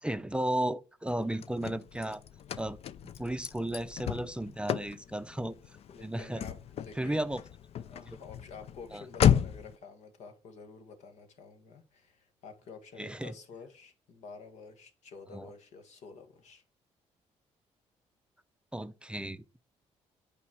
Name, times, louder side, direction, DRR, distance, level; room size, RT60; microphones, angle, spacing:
voice 1, 0.0-2.2 2.6-2.8 3.2-5.8 6.0-6.4 7.0-7.4 8.9-9.0 13.0-13.3 15.3-15.5 18.7-19.4, right 1 dB, 10° right, 0.5 m, -34 dB
Car / Slam, 1.1-9.8, left 9 dB, 60° left, 0.5 m, -33 dB
voice 2, 5.9-7.3 7.9-16.6, left 5 dB, 75° left, 1.6 m, -50 dB
8.6 x 5.1 x 4.6 m
cardioid pair, 90°, 12 cm